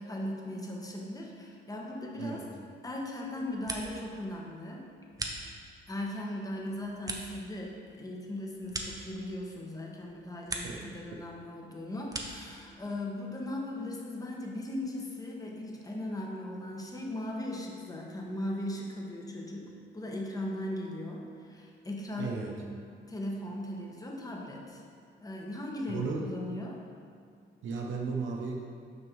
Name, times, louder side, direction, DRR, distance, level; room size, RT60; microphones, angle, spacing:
voice 1, 0.0-2.4 2.8-4.9 5.9-22.3 23.1-24.8 25.2-26.8, left 1 dB, 20° left, -1 dB, 1.2 m, -38 dB
voice 2, 2.2-2.6 10.6-10.8 22.2-22.7 25.9-26.4 27.6-28.6, right 4 dB, 75° right, 0 dB, 0.9 m, -35 dB
sound 1, 3.3-4.2 4.5-5.9 6.4-9.6 10.0-10.9 11.2-12.5, right 2 dB, 20° right, 0.8 m, -41 dB
6.5 x 5.3 x 4.6 m, 2.3 s
cardioid pair, 90°, 20 cm